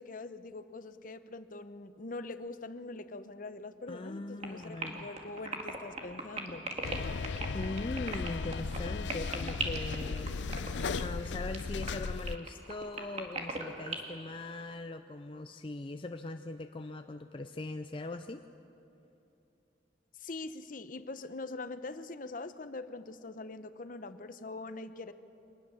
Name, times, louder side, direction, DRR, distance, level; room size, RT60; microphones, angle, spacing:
voice 1, 0.0-6.7 20.2-25.1, left 3 dB, 50° left, 12 dB, 0.8 m, -43 dB
voice 2, 3.9-5.1 7.5-10.6 11.0-18.5, left 2 dB, 30° left, 7 dB, 0.5 m, -40 dB
sound 1, 4.4-14.0, right 3 dB, 40° right, 2.3 m, -38 dB
sound 2, 6.8-12.4, left 4 dB, 90° left, 0.5 m, -36 dB
24.0 x 20.0 x 7.1 m, 2.8 s
head